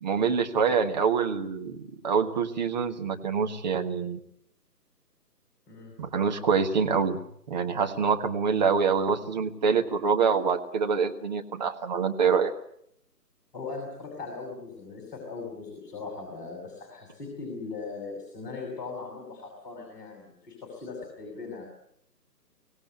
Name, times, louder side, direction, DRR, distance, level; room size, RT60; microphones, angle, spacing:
voice 1, 0.0-4.2 6.0-7.2 7.5-12.5, right 6 dB, 25° right, 4 dB, 1.5 m, -25 dB
voice 2, 13.5-21.7, left 4 dB, 30° left, 1 dB, 6.1 m, -39 dB
24.5 x 17.5 x 8.2 m, 0.74 s
figure-of-eight pair, 145°, 49 cm